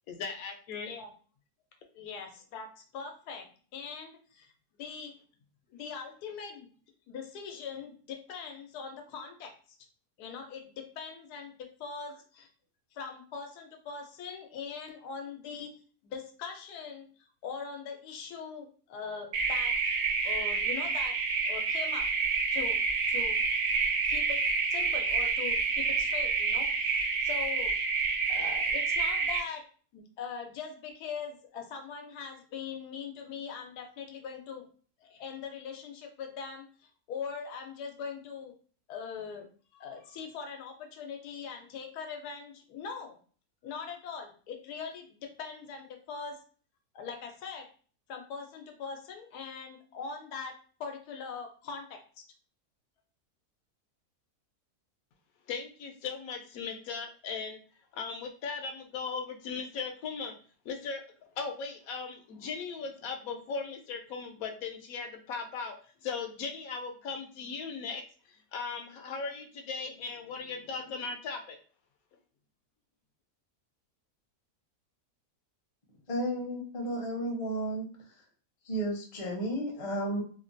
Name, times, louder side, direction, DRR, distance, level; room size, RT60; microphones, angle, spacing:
voice 1, 0.1-0.9 55.5-57.6 57.9-60.3 60.6-61.0 61.4-65.8 66.0-68.0 68.5-71.6, left 5 dB, 70° left, 5 dB, 1.0 m, -38 dB
voice 2, 0.7-1.1 1.9-2.7 2.9-3.5 3.7-4.5 4.8-5.1 5.7-6.7 7.1-9.8 10.2-12.5 12.9-15.7 16.0-17.1 17.4-19.8 20.2-21.2 21.4-22.1 22.5-22.8 23.1-23.4 24.1-27.7 28.3-29.6 29.9-34.6 35.0-38.5 38.9-39.5 39.7-43.2 43.6-46.4 46.9-47.7 48.1-52.0, left 6 dB, 90° left, 4 dB, 1.2 m, -41 dB
sound 1, 19.3-29.4, right 4 dB, 65° right, 0.8 m, -28 dB
voice 3, 76.1-77.9 78.6-80.2, right 1 dB, 35° left, 0 dB, 0.6 m, -32 dB
3.2 x 2.2 x 2.5 m, 0.41 s
omnidirectional pair, 1.6 m